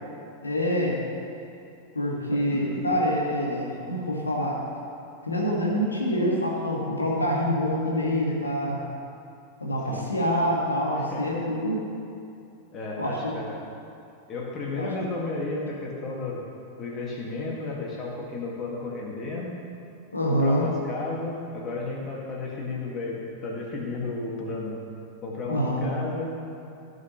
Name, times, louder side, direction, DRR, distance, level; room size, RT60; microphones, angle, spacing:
voice 1, 0.4-1.0 1.9-4.6 5.2-8.8 9.6-11.9 13.0-13.2 14.8-14.9 20.1-20.7 25.5-25.9, equal, 80° left, -3 dB, 1.9 m, -26 dB
voice 2, 2.3-2.9 9.9-10.1 11.0-11.2 12.7-13.6 14.3-16.4 16.8-19.6 20.3-24.8 25.2-26.4, left 3 dB, 30° left, -3 dB, 2.0 m, -33 dB
16.0 x 6.2 x 3.2 m, 2.7 s
figure-of-eight pair, 90°, 0 cm